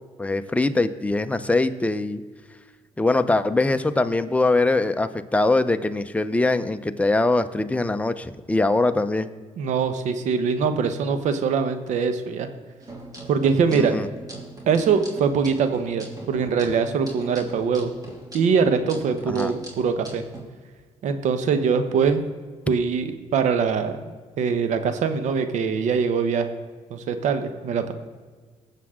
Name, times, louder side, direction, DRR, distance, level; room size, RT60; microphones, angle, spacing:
voice 1, 0.2-2.2 3.0-9.3 13.7-14.1 19.3-19.5, left 2 dB, 10° left, 9 dB, 0.7 m, -22 dB
voice 2, 9.6-12.5 13.3-14.0 14.7-17.9 18.3-20.2 21.0-22.3 22.7-24.0 24.4-26.5 26.9-27.9, right 6 dB, 70° right, 9 dB, 1.1 m, -23 dB
sound 1, 12.8-20.4, right 2 dB, 30° right, 2.9 m, -40 dB
19.0 x 7.3 x 3.7 m, 1.5 s
supercardioid pair, 75°, 13 cm